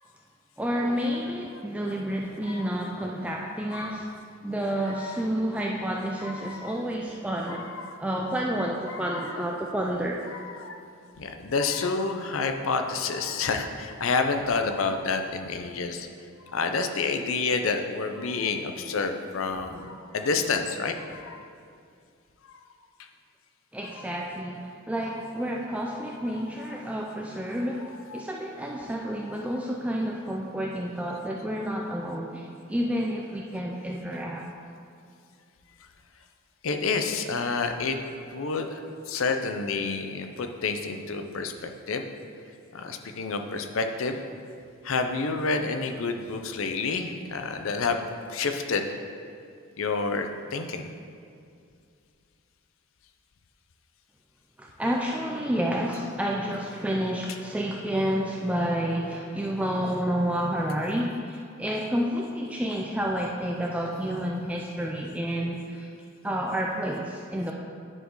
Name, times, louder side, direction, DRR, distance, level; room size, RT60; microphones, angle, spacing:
voice 1, 0.6-4.1 4.4-7.7 8.0-10.2 23.7-34.4 54.6-65.9 66.2-67.5, equal, 5° right, -1 dB, 0.3 m, -30 dB
voice 2, 3.7-4.0 4.8-5.3 6.2-6.8 7.5-8.0 8.9-9.3 10.3-10.8 11.2-16.1 16.5-21.5 23.9-24.1 24.9-25.3 26.3-26.8 27.8-28.2 29.3-29.4 36.6-38.0 38.3-38.8 39.1-42.0 42.7-44.2 44.8-48.0 48.3-48.9 49.8-50.9 57.3-57.4, left 4 dB, 65° left, 6 dB, 0.6 m, -29 dB
9.8 x 4.4 x 4.6 m, 2.4 s
head